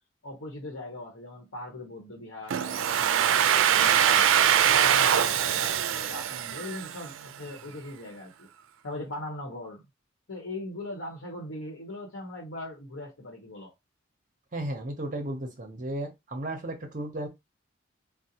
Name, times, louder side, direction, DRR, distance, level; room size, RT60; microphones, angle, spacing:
voice 1, 0.2-4.3 4.7-8.5 8.8-9.8 10.3-13.7, left 1 dB, 90° left, 0.9 m, -39 dB
Domestic sounds home sounds, 2.5-7.3, right 9 dB, 85° right, 0.3 m, -23 dB
voice 2, 14.5-17.3, right 1 dB, 40° right, 0.6 m, -34 dB
3.9 x 2.0 x 2.8 m
head